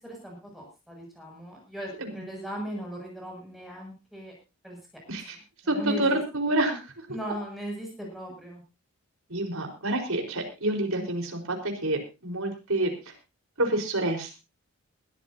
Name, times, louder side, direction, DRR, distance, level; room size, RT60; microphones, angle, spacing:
voice 1, 0.0-4.3 4.6-4.8 5.6-6.2 7.1-8.6, right 1 dB, ahead, -1 dB, 7.4 m, -38 dB
voice 2, 5.7-6.8 9.3-13.1 13.6-14.4, right 1 dB, 70° right, 3 dB, 4.6 m, -28 dB
21.5 x 13.5 x 2.8 m, 0.28 s
head